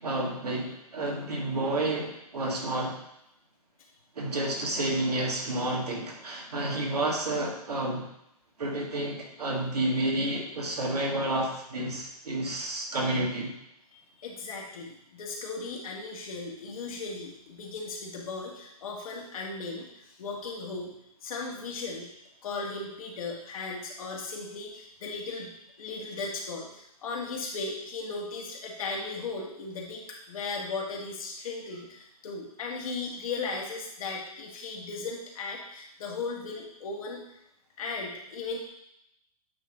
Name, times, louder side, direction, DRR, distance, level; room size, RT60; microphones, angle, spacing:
voice 1, 0.0-3.0 4.2-8.1 8.6-13.5, right 1 dB, 85° right, -2 dB, 2.0 m, -30 dB
voice 2, 13.9-20.9 21.2-37.2 37.8-38.6, left 3 dB, 65° left, -1 dB, 1.7 m, -37 dB
8.4 x 3.3 x 3.7 m, 0.80 s
hypercardioid pair, 135°, 20 cm